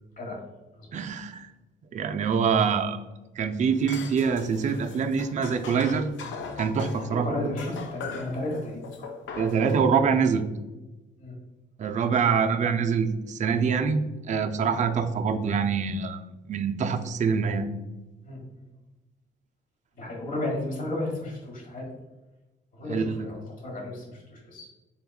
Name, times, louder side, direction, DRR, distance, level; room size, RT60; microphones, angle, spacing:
voice 1, 0.9-1.5 1.9-3.0 3.4-6.1 6.6-7.3 9.4-10.4 11.8-14.0 14.3-16.2 16.5-17.7 22.9-23.3, right 6 dB, 40° right, 7 dB, 0.4 m, -25 dB
sound 1, 3.7-7.2 7.6-9.9, left 5 dB, 70° left, 0.5 m, -40 dB
voice 2, 7.0-9.1 11.2-11.4 18.2-18.7 20.0-21.9 22.7-24.7, left 2 dB, 45° left, -1 dB, 1.2 m, -34 dB
3.8 x 3.5 x 2.3 m, 1.1 s
cardioid pair, 90°, 20 cm